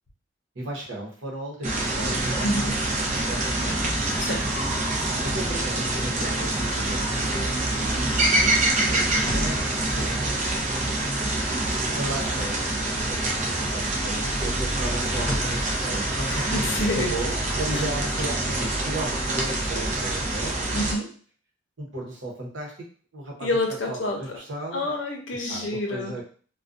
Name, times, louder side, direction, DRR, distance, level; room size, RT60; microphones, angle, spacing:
voice 1, 0.5-3.8 5.2-7.6 8.4-10.9 11.8-20.6 21.8-22.7 23.1-23.5 23.9-24.9 25.5-26.2, right 2 dB, 75° right, -2 dB, 0.9 m, -35 dB
sound 1, 1.6-20.9, right 2 dB, 40° right, 0.5 m, -26 dB
voice 2, 2.4-2.8 4.2-4.4 16.3-17.1 17.7-17.8 20.7-21.1 23.4-24.2 24.7-26.1, left 1 dB, 70° left, 1 dB, 0.6 m, -28 dB
sound 2, 6.6-13.1 13.4-18.8, equal, 15° left, 1.0 m, -41 dB
2.4 x 2.2 x 2.5 m, 0.42 s
head